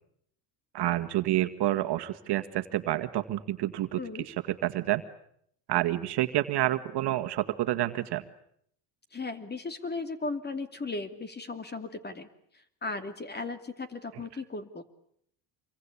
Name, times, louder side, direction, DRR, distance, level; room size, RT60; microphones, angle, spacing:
voice 1, 0.7-4.0 4.3-4.4 4.6-5.0 5.7-8.2, right 14 dB, 60° right, 9 dB, 1.9 m, -28 dB
voice 2, 9.1-12.3 12.8-14.8, left 3 dB, 20° left, 10 dB, 2.7 m, -36 dB
27.0 x 23.0 x 8.6 m, 0.69 s
cardioid pair, 110°, 47 cm